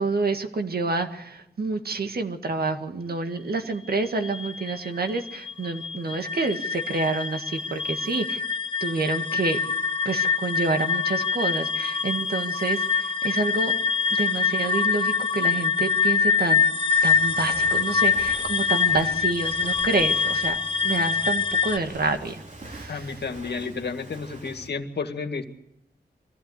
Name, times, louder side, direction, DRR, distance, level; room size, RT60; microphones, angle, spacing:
voice 1, 0.0-8.4 8.8-9.6 10.1-13.7 14.1-16.6 17.0-20.6 20.8-23.1, right 3 dB, 65° right, 7 dB, 1.8 m, -28 dB
sound 1, 3.9-21.8, left 5 dB, 30° left, 1.0 m, -25 dB
Walk footsteps, 17.0-24.7, right 1 dB, 45° right, 3.6 m, -43 dB
voice 2, 22.9-25.5, left 4 dB, 85° left, 7 dB, 1.9 m, -31 dB
23.0 x 16.0 x 8.3 m, 0.83 s
wide cardioid pair, 105°, 17 cm